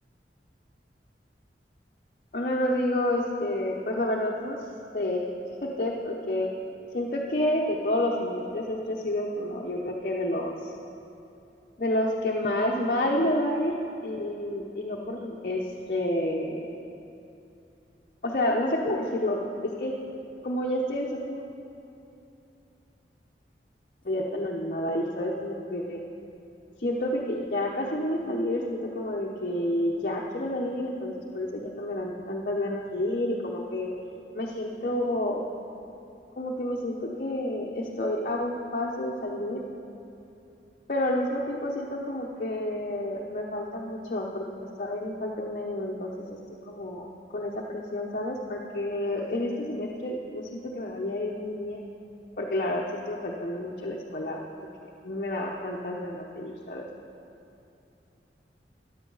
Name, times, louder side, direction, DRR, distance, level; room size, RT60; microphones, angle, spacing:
voice 1, 2.3-4.6 4.9-5.2 5.6-6.5 6.9-10.7 11.8-13.7 14.0-16.7 18.2-19.9 20.4-21.5 24.0-26.0 26.8-33.9 34.3-35.5 36.4-39.6 40.9-44.4 44.8-46.4 46.7-51.8 52.4-54.7 55.0-56.9, left 1 dB, 50° left, -2 dB, 0.8 m, -29 dB
14.0 x 10.5 x 4.0 m, 2.8 s
head